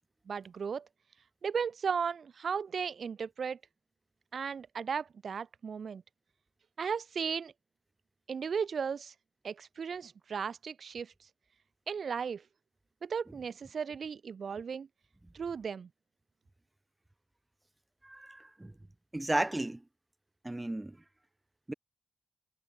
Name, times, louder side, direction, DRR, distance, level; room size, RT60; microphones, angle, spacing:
voice 1, 0.3-0.9 1.4-3.6 4.3-6.0 6.8-7.5 8.3-9.1 9.4-11.1 11.9-12.4 13.0-14.9 15.3-15.9, right 6 dB, 70° right, 1.7 m, -35 dB
voice 2, 18.0-18.7 19.1-19.8 20.4-21.0 21.7-21.8, right 1 dB, 15° right, 1.4 m, -34 dB
wide cardioid pair, 130°, 0 cm